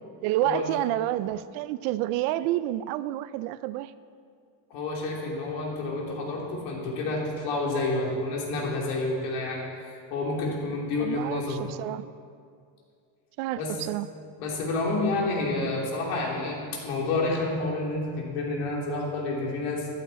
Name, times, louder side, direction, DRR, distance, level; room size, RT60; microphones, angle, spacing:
voice 1, 0.0-3.9 11.0-12.1 13.4-14.1, right 14 dB, 85° right, 15 dB, 0.6 m, -29 dB
voice 2, 4.7-11.6 13.6-13.7 14.4-19.9, left 2 dB, 90° left, -2 dB, 3.3 m, -29 dB
14.0 x 12.0 x 4.2 m, 2.3 s
cardioid pair, 160°, 49 cm